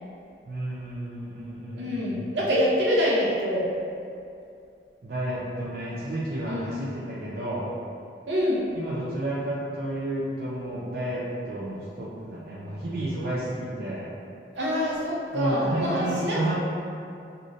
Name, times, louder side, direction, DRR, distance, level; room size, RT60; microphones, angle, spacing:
voice 1, 0.5-2.2 5.0-7.7 8.7-14.1 15.3-16.6, right 1 dB, 55° right, -7 dB, 0.5 m, -31 dB
voice 2, 1.7-3.7 6.5-6.7 8.3-8.7 14.5-16.6, equal, 85° right, -5 dB, 0.8 m, -25 dB
4.9 x 2.7 x 2.6 m, 2.5 s
head